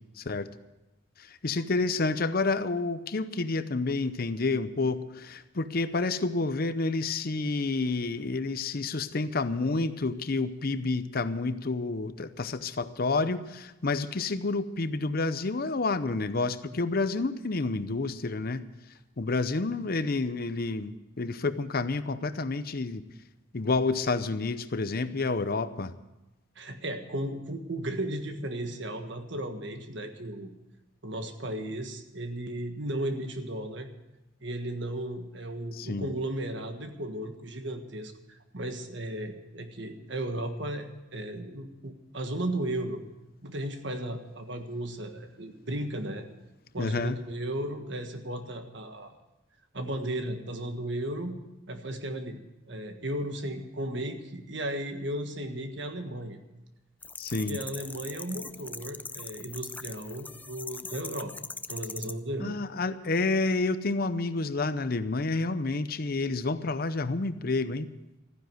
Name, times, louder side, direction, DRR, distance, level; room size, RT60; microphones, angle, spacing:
voice 1, 0.2-0.5 1.2-18.6 19.2-23.0 23.5-25.9 35.7-36.1 46.8-47.2 57.2-57.6 62.4-67.9, left 3 dB, 45° left, 13 dB, 0.7 m, -29 dB
voice 2, 26.5-30.5 31.0-33.9 34.4-43.0 43.4-46.3 46.7-49.1 49.7-51.3 51.7-52.4 52.7-56.4 57.3-62.5, right 1 dB, 60° right, 6 dB, 1.6 m, -35 dB
sound 1, 57.0-62.1, left 4 dB, 10° left, 0.4 m, -40 dB
14.5 x 10.0 x 7.8 m, 0.99 s
head